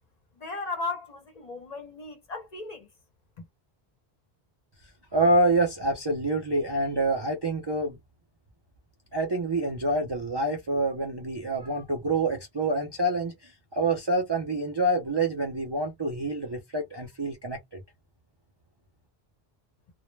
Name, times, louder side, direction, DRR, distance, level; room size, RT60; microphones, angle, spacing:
voice 1, 0.4-2.9 3.4-3.5, left 3 dB, 45° left, 0.6 m, -36 dB
voice 2, 5.1-8.0 9.1-17.8, right 2 dB, 40° right, 0.4 m, -27 dB
2.1 x 2.0 x 3.1 m
omnidirectional pair, 1.1 m